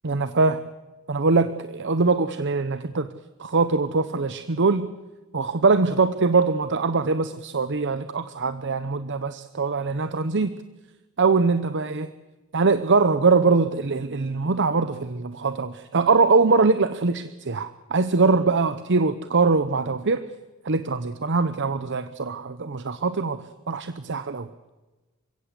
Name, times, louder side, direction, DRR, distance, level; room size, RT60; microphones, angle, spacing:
voice 1, 0.0-0.6 1.1-3.1 3.4-4.9 5.3-10.5 11.2-12.1 12.5-20.2 20.6-24.5, right 4 dB, 55° right, 12 dB, 0.9 m, -22 dB
28.0 x 16.5 x 8.1 m, 1.2 s
head